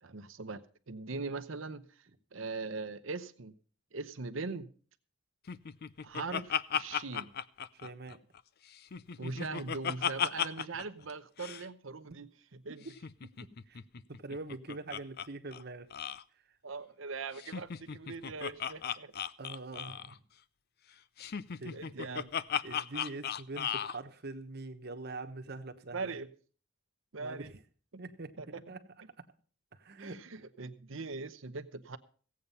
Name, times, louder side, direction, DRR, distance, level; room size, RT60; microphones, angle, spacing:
voice 1, 0.0-1.8 2.3-3.5 3.9-4.7 6.0-7.3 9.2-12.3 12.6-12.8 16.6-19.1 21.7-22.3 25.9-26.3 27.1-27.5 28.4-28.6 30.0-32.0, right 3 dB, 70° right, 11 dB, 0.9 m, -40 dB
Laughter, 5.5-8.4 8.7-10.8 11.1-11.2 11.4-11.6 12.9-15.3 15.5-15.6 15.9-16.2 17.4-20.2 21.2-24.0, left 8 dB, 50° left, 0.5 m, -36 dB
voice 2, 7.7-8.2 12.8-12.9 13.7-13.8 14.2-15.9 16.5-16.6 19.4-20.2 21.6-22.3 22.6-26.2 27.1-27.6 28.0-28.8 29.7-30.2, right 2 dB, 55° right, 7 dB, 1.3 m, -44 dB
16.5 x 8.5 x 5.6 m, 0.42 s
head